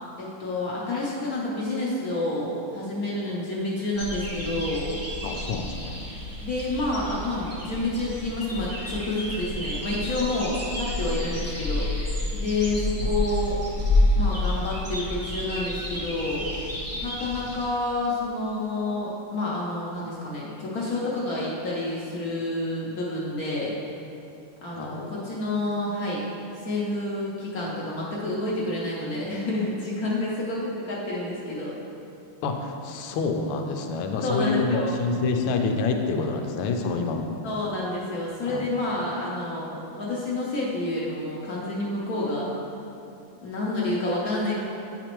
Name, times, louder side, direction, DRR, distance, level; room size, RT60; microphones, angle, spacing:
voice 1, 0.2-4.9 6.4-11.9 12.3-13.6 14.2-16.7 16.9-23.7 24.6-26.2 26.5-31.7 34.2-35.2 37.4-42.5 43.4-44.6, left 2 dB, 60° left, -5 dB, 1.0 m, -29 dB
sound 1, 3.9-17.7, left 1 dB, 15° right, 0.4 m, -29 dB
voice 2, 5.2-6.0 13.0-13.2 24.7-25.2 32.4-37.3 38.4-38.7, left 4 dB, 85° left, 4 dB, 1.5 m, -27 dB
8.9 x 5.0 x 3.0 m, 2.7 s
omnidirectional pair, 2.4 m